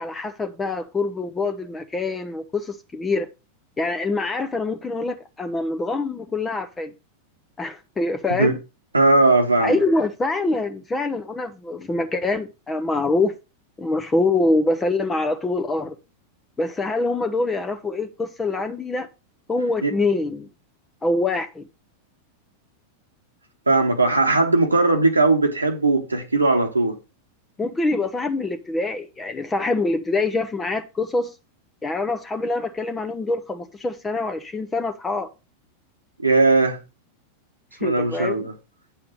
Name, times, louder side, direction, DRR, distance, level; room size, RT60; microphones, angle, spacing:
voice 1, 0.0-3.3 3.8-6.9 7.6-8.6 9.6-13.3 13.8-15.9 16.6-19.1 19.5-20.5 21.0-21.7 27.6-31.4 31.8-35.3 37.8-38.4, left 2 dB, 15° left, 0.8 m, -25 dB
voice 2, 8.9-9.8 19.8-19.9 23.7-27.0 36.2-36.8 37.8-38.5, right 3 dB, 80° right, 1.0 m, -18 dB
8.8 x 5.8 x 5.1 m
figure-of-eight pair, 90°, 0 cm